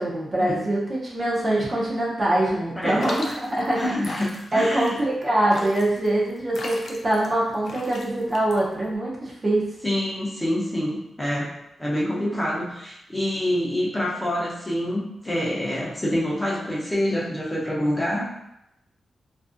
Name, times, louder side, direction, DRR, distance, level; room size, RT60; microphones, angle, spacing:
voice 1, 0.0-4.1 4.5-9.7, right 1 dB, 30° right, -4 dB, 0.5 m, -24 dB
voice 2, 2.8-3.1 3.7-5.0 9.8-11.5 11.8-18.3, left 1 dB, 10° left, -5 dB, 0.6 m, -26 dB
sound 1, 3.0-9.0, left 2 dB, 60° left, 0.4 m, -38 dB
2.6 x 2.5 x 2.4 m, 0.82 s
wide cardioid pair, 135°, 0 cm